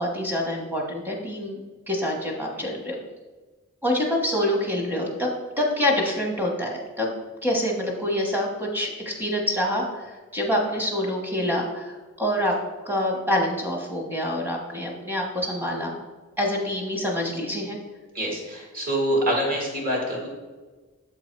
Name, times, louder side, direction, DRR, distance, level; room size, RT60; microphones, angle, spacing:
voice 1, 0.0-3.0 3.8-5.3 5.6-7.1 7.4-12.5 12.8-16.0 16.4-17.8, left 1 dB, 10° right, 0 dB, 1.1 m, -26 dB
voice 2, 18.1-20.3, equal, 40° right, -2 dB, 1.8 m, -25 dB
7.7 x 3.8 x 4.5 m, 1.3 s
head